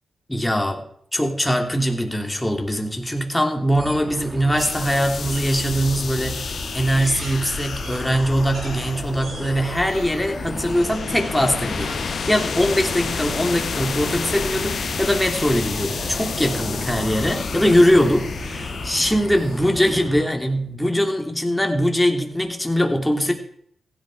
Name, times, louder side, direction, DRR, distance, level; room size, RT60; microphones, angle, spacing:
voice 1, 0.3-0.8 1.1-23.3, equal, 10° left, 3 dB, 3.2 m, -21 dB
sound 1, 3.0-3.2 3.6-4.7 5.3-5.6 6.2-6.3 6.8-8.8 9.2-9.9 10.4-10.5 11.8-13.0, right 3 dB, 75° right, 5.4 m, -40 dB
sound 2, 3.7-20.3, right 2 dB, 40° right, 2.3 m, -36 dB
sound 3, 4.6-19.9, left 6 dB, 65° left, 1.2 m, -30 dB
15.5 x 11.0 x 5.0 m, 0.66 s
supercardioid pair, 50°, 0 cm